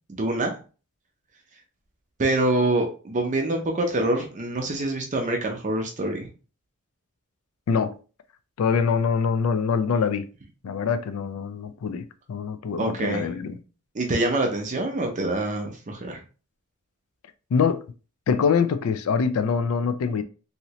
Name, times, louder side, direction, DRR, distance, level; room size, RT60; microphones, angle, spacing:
voice 1, 0.1-0.5 2.2-6.3 12.8-13.3 13.9-16.2, right 2 dB, 35° right, 0.6 m, -25 dB
voice 2, 7.7-8.0 8.6-10.3 10.6-13.5 17.5-17.9 18.3-20.2, left 6 dB, 80° left, 0.4 m, -24 dB
3.0 x 2.7 x 2.8 m
head